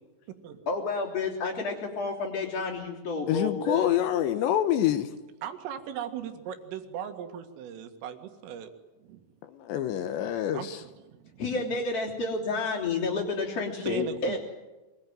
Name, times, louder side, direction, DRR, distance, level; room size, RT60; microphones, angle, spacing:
voice 1, 0.7-3.9 11.4-14.4, left 3 dB, 35° left, -6 dB, 3.7 m, -30 dB
voice 2, 3.3-5.1 9.5-10.8, left 11 dB, 75° left, 10 dB, 2.8 m, -26 dB
voice 3, 5.4-8.7 9.0-9.2 10.5-11.4 13.9-14.4, right 9 dB, 75° right, 6 dB, 4.4 m, -38 dB
25.0 x 21.0 x 9.4 m, 1.1 s
omnidirectional pair, 5.9 m